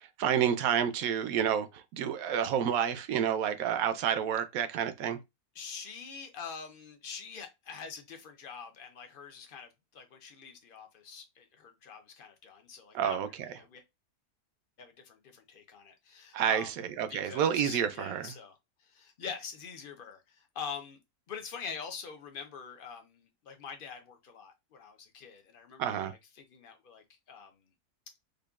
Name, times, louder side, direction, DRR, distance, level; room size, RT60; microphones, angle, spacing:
voice 1, 0.2-1.7 1.9-5.2 12.9-13.3 16.3-16.7 17.0-18.3 25.8-26.1, right 9 dB, 70° right, 0.9 m, -29 dB
voice 2, 5.5-13.8 14.8-16.7 17.1-18.6 18.8-21.0 21.3-27.6, left 6 dB, 60° left, 0.5 m, -45 dB
5.1 x 2.3 x 2.3 m
omnidirectional pair, 1.7 m